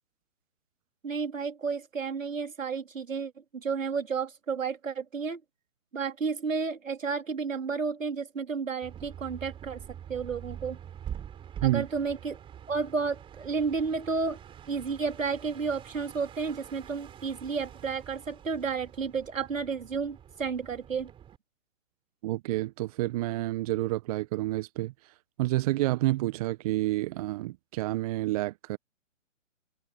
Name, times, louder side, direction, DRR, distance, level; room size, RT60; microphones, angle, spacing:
voice 1, 1.0-5.4 5.9-9.8 10.1-10.8 11.6-12.4 12.7-14.4 14.7-21.1, right 5 dB, 80° right, 3.1 m, -32 dB
sound 1, 8.8-21.4, right 9 dB, 15° right, 3.9 m, -45 dB
voice 2, 22.2-25.1 25.4-28.8, right 17 dB, 30° right, 1.1 m, -29 dB
hypercardioid pair, 140°, 39 cm